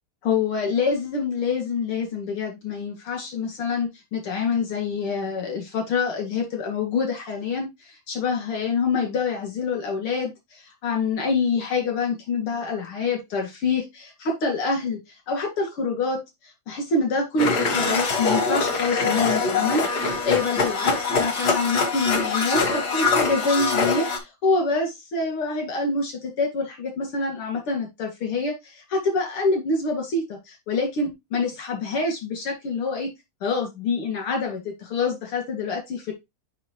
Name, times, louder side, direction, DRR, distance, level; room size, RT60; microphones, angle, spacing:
voice 1, 0.2-15.0 15.3-16.2 16.7-20.9 21.2-33.1 33.4-36.1, left 4 dB, 85° left, 2 dB, 2.9 m, -26 dB
Domestic sounds home sounds, 17.4-24.2, left 4 dB, 50° left, 1.9 m, -23 dB
7.4 x 5.3 x 2.9 m, 0.21 s
omnidirectional pair, 2.3 m